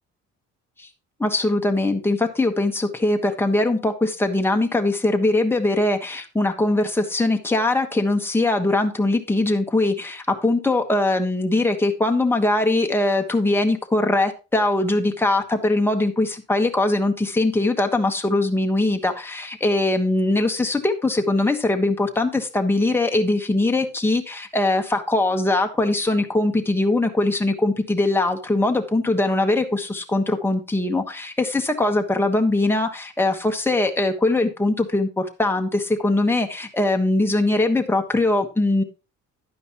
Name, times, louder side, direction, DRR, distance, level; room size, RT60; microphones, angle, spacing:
voice 1, 1.2-38.8, left 2 dB, 5° left, 4 dB, 1.3 m, -21 dB
11.0 x 9.4 x 3.0 m, 0.31 s
cardioid pair, 90°, 30 cm